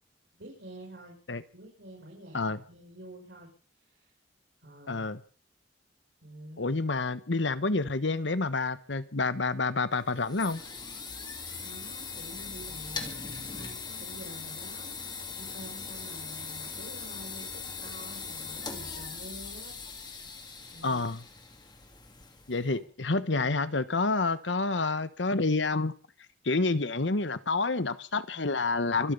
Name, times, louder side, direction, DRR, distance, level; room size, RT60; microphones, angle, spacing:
voice 1, 0.3-1.2 1.5-3.5 3.9-4.1 4.6-5.1 6.2-6.7 11.2-11.3 11.6-14.9 15.4-19.8 20.7-21.2 22.7-23.6, right 1 dB, 65° right, -1 dB, 6.6 m, -48 dB
voice 2, 4.9-5.2 6.6-10.6 20.8-21.2 22.5-25.9 26.4-29.1, left 3 dB, 75° left, 14 dB, 1.2 m, -28 dB
sound 1, 9.9-22.7, left 5 dB, 25° left, 2.4 m, -40 dB
25.5 x 10.5 x 5.5 m, 0.41 s
head